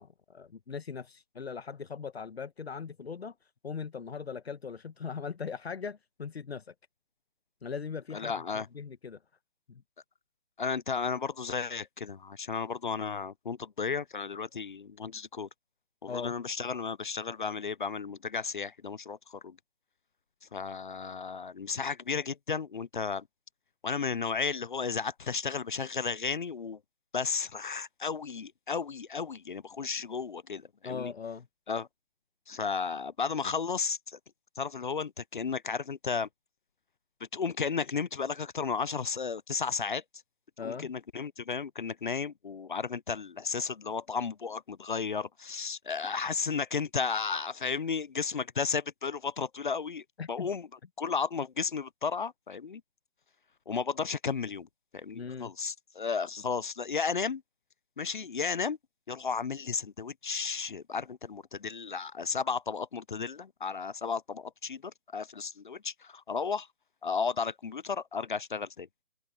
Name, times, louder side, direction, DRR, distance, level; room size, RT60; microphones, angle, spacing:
voice 1, 0.0-3.3 3.6-6.7 7.6-9.2 9.7-9.8 16.1-16.3 30.8-31.5 40.6-40.9 50.2-50.5 55.1-55.5, left 6 dB, 75° left, 1.2 m, -39 dB
voice 2, 8.1-8.7 10.6-15.5 16.0-19.6 20.5-23.3 23.8-26.8 27.1-31.1 31.7-31.9 32.5-34.0 34.6-36.3 37.3-40.0 40.6-50.7 51.0-52.8 53.7-54.7 54.9-57.4 58.0-58.8 59.1-66.7 67.0-68.9, left 5 dB, 50° left, 0.5 m, -33 dB
open air
hypercardioid pair, 175°, 31 cm